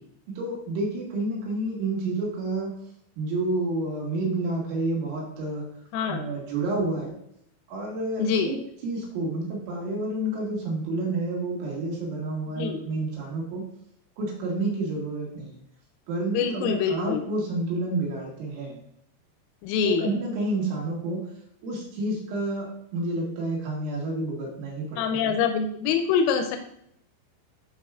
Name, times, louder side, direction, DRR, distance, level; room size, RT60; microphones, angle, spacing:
voice 1, 0.3-2.8 3.2-5.7 6.1-7.1 7.7-8.6 8.8-13.7 14.2-15.5 16.1-18.8 20.0-21.2 21.6-25.3, right 2 dB, 70° right, -2 dB, 3.6 m, -29 dB
voice 2, 5.9-6.3 8.2-8.6 12.5-12.8 16.3-17.2 19.6-20.1 25.0-26.6, left 6 dB, 90° left, 6 dB, 3.3 m, -25 dB
11.5 x 4.2 x 2.3 m, 0.73 s
omnidirectional pair, 6.0 m